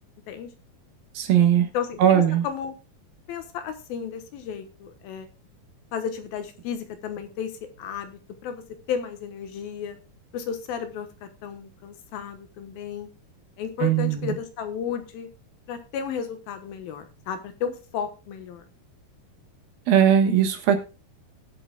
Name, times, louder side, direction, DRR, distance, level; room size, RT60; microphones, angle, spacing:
voice 1, 1.2-1.7 2.0-2.5 13.8-14.4 19.9-20.8, right 9 dB, 70° right, 7 dB, 3.0 m, -19 dB
voice 2, 1.7-2.7 3.3-5.3 5.9-7.5 7.8-8.6 8.9-10.0 10.3-11.1 11.4-13.1 13.6-15.3 15.7-18.6, left 7 dB, 75° left, 8 dB, 2.9 m, -33 dB
19.0 x 7.7 x 2.3 m, 0.32 s
omnidirectional pair, 4.5 m